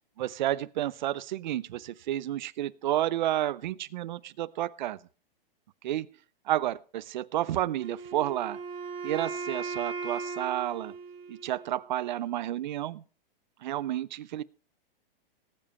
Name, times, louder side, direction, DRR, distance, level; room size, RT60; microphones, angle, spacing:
voice 1, 0.2-5.0 5.8-6.1 6.5-8.6 9.0-10.9 11.3-13.0 13.6-14.4, right 13 dB, 50° right, 18 dB, 0.6 m, -31 dB
Wind instrument woodwind instrument, 7.8-11.8, right 4 dB, 30° right, 4.6 m, -38 dB
19.0 x 7.6 x 4.2 m, 0.38 s
hypercardioid pair, 165°, 29 cm